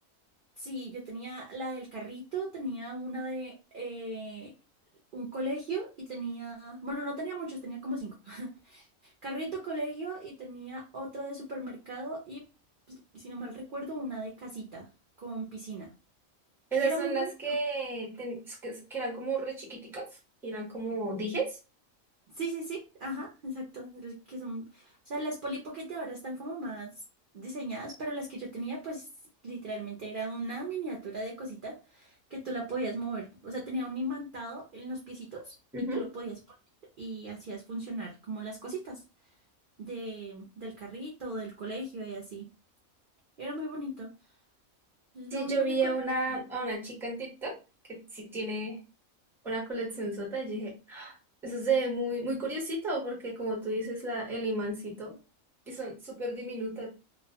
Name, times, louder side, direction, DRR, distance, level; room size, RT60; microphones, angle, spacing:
voice 1, 0.6-4.5 5.1-12.5 12.9-14.9 15.2-15.9 16.8-17.6 22.4-26.9 27.3-29.1 29.4-35.5 35.9-36.3 37.0-39.0 39.8-42.5 43.4-44.1 45.1-45.9 46.3-46.4, right 1 dB, 60° right, -2 dB, 0.5 m, -37 dB
voice 2, 16.7-20.1 20.4-21.6 35.7-36.0 45.3-47.5 47.9-48.8 49.4-51.1 51.4-55.1 55.7-56.9, right 2 dB, ahead, -2 dB, 0.6 m, -33 dB
2.3 x 2.1 x 2.7 m, 0.30 s
omnidirectional pair, 1.5 m